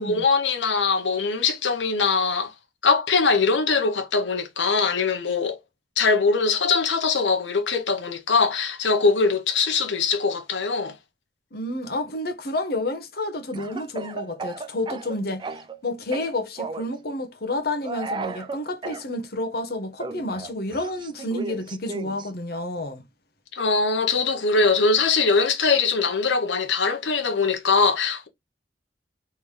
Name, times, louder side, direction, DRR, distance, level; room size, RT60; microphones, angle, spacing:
voice 1, 0.0-2.5 2.8-5.6 6.0-10.9 23.5-28.3, left 4 dB, 85° left, 1.1 m, -22 dB
voice 2, 11.5-23.0, left 1 dB, 60° left, 1.1 m, -30 dB
Speech / Cough, 13.5-15.8 16.1-16.9 17.8-19.0 20.0-22.3, right 3 dB, 25° right, 0.3 m, -35 dB
4.0 x 3.4 x 3.3 m
head